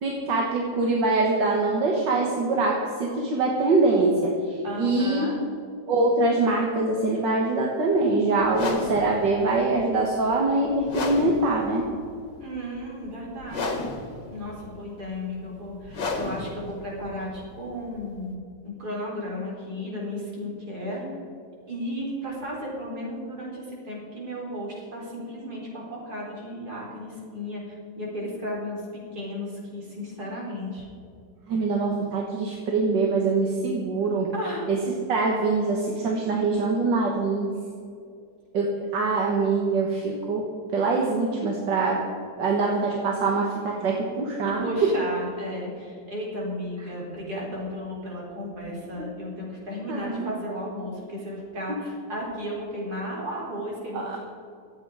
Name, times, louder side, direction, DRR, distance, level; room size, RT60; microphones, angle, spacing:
voice 1, 0.0-5.3 5.9-11.9 31.5-34.3 34.7-34.8 35.1-37.5 38.5-40.5 40.7-42.0 42.4-44.7 49.0-49.1 49.9-50.3 53.9-54.2, right 3 dB, 80° right, -1 dB, 2.1 m, -24 dB
voice 2, 4.6-5.4 12.4-13.8 14.3-21.1 21.7-28.8 29.1-30.9 34.3-34.6 44.4-54.2, equal, 60° right, -4 dB, 4.6 m, -34 dB
sound 1, 8.4-18.3, left 3 dB, 80° left, 2.2 m, -34 dB
24.5 x 8.5 x 4.9 m, 2.4 s
omnidirectional pair, 1.9 m